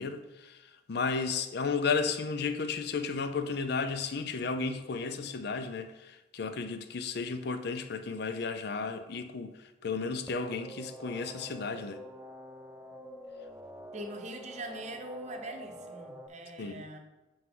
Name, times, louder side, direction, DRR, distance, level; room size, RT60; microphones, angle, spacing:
voice 1, 0.0-12.0 16.6-16.8, left 4 dB, 60° left, 0.5 m, -33 dB
sound 1, 10.3-16.3, equal, 5° right, 0.4 m, -47 dB
voice 2, 13.9-17.0, right 1 dB, 40° right, 0.8 m, -42 dB
7.7 x 4.7 x 3.8 m
head